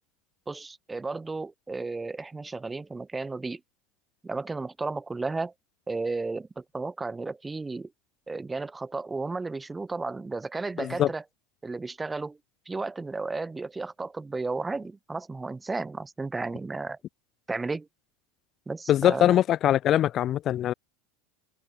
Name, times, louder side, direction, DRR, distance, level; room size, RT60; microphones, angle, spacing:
voice 1, 0.5-3.6 4.2-5.5 5.9-7.9 8.3-11.2 11.6-12.4 12.7-17.0 17.5-17.9 18.7-19.4, right 3 dB, 10° right, 1.4 m, -33 dB
voice 2, 10.8-11.1 18.9-20.7, left 12 dB, 35° left, 0.5 m, -22 dB
supercardioid pair, 145°, 0 cm